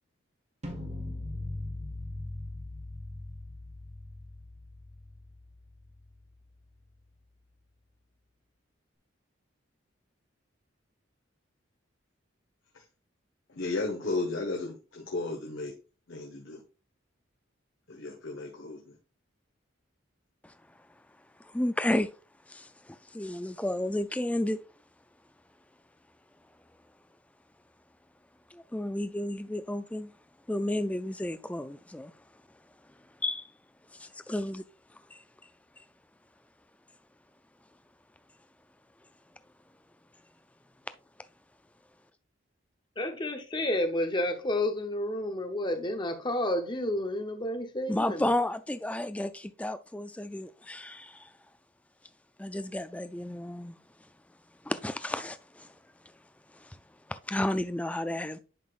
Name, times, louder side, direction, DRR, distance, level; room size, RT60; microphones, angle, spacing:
sound 1, 0.6-6.6, left 2 dB, 35° right, 1.2 m, -40 dB
voice 1, 13.5-15.7 16.1-16.6 17.9-18.8, left 3 dB, 80° left, 1.3 m, -34 dB
voice 2, 21.4-22.1 22.5-24.6 28.5-30.1 30.5-32.1 33.2-33.5 33.9-34.6 35.1-35.2 47.9-51.3 52.4-53.8 54.6-55.7 56.5-56.8 57.1-58.4, left 1 dB, 5° left, 0.3 m, -32 dB
voice 3, 43.0-48.2, left 1 dB, 25° left, 0.9 m, -30 dB
11.0 x 4.0 x 2.4 m
head